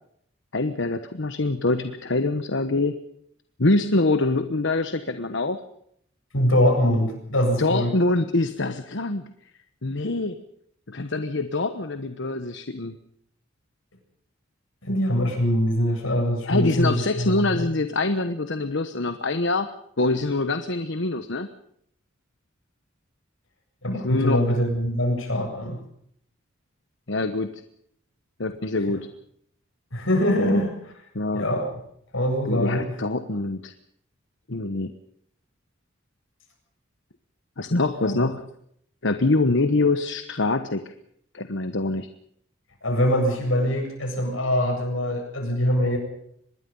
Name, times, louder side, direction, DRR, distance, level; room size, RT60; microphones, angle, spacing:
voice 1, 0.5-3.0 3.6-5.6 7.6-9.3 9.8-10.4 10.9-13.0 16.5-19.7 20.0-21.5 24.0-24.4 27.1-27.5 28.4-29.1 30.4-30.6 31.1-31.4 32.5-33.7 34.5-34.9 37.6-38.4 39.0-40.9 41.3-42.1, left 2 dB, 65° left, 9 dB, 1.2 m, -24 dB
voice 2, 6.3-7.9 14.8-17.7 23.8-25.8 29.9-30.7 31.3-31.8 32.1-32.9 38.0-38.3 42.8-46.0, equal, 85° left, 3 dB, 7.9 m, -23 dB
25.0 x 21.0 x 5.5 m, 0.70 s
head